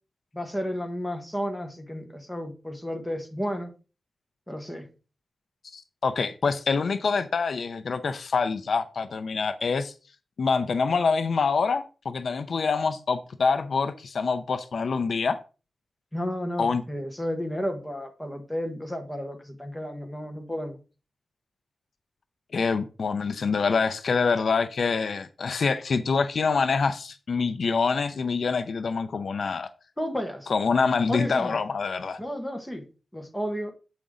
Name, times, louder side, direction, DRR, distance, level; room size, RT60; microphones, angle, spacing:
voice 1, 0.3-3.7 4.5-4.9 16.1-20.8 30.0-30.5 31.1-31.6 32.2-32.9 33.1-33.7, equal, 5° left, 1.5 m, -32 dB
voice 2, 5.7-9.9 10.4-15.4 16.6-16.8 22.5-29.7 30.5-32.2, left 5 dB, 65° left, 0.6 m, -26 dB
8.2 x 5.2 x 3.7 m
wide cardioid pair, 95°, 0 cm